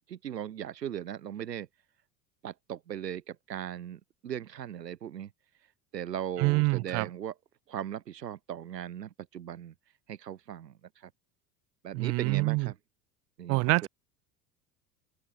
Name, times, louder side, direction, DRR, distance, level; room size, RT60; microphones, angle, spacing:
voice 1, 0.1-1.7 2.4-5.3 5.9-7.3 7.7-9.7 10.1-11.1 11.8-12.8 13.4-13.9, right 10 dB, 75° right, 1.7 m, -38 dB
voice 2, 6.4-7.1 11.9-12.7 13.5-13.9, right 27 dB, 35° right, 0.4 m, -26 dB
figure-of-eight pair, 70°, 50 cm